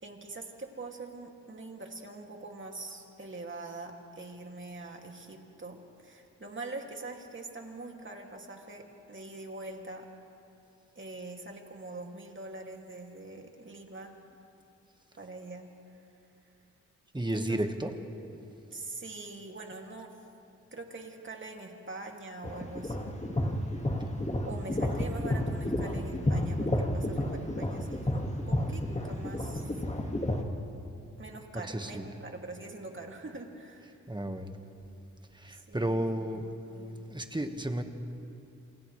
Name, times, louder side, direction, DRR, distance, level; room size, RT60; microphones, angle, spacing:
voice 1, 0.0-10.1 10.9-14.1 15.2-16.0 17.3-17.6 18.7-20.1 20.7-23.1 24.4-29.8 31.2-34.1 35.5-36.3 36.7-37.0, right 2 dB, 40° right, 1 dB, 2.6 m, -44 dB
voice 2, 17.1-17.9 31.6-32.1 34.1-34.6 35.3-36.5 37.1-37.8, right 1 dB, 15° right, 5 dB, 1.6 m, -32 dB
sound 1, 22.4-30.4, left 1 dB, 20° left, 2.1 m, -31 dB
29.0 x 27.5 x 3.4 m, 2.7 s
cardioid pair, 65°, 31 cm